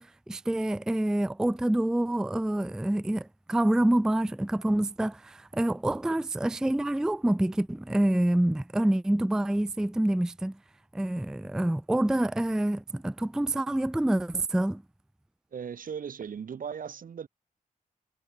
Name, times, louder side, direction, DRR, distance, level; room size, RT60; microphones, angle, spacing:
voice 1, 0.0-10.6 10.9-14.8, right 1 dB, 5° right, 0.3 m, -27 dB
voice 2, 15.5-17.3, right 7 dB, 75° right, 2.7 m, -37 dB
wide cardioid pair, 170°, 14 cm